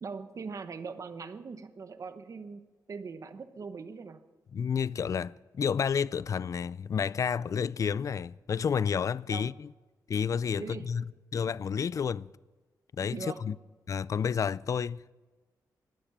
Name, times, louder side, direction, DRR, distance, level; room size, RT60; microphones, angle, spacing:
voice 1, 0.0-2.6 2.9-4.2 9.3-9.5 10.5-10.9 13.1-13.4, right 5 dB, 45° right, 1.0 m, -41 dB
voice 2, 4.5-9.7 10.1-11.0 11.3-12.3 13.0-13.5 13.9-15.1, left 7 dB, 45° left, 0.4 m, -30 dB
17.5 x 12.0 x 5.9 m
wide cardioid pair, 120°, 7 cm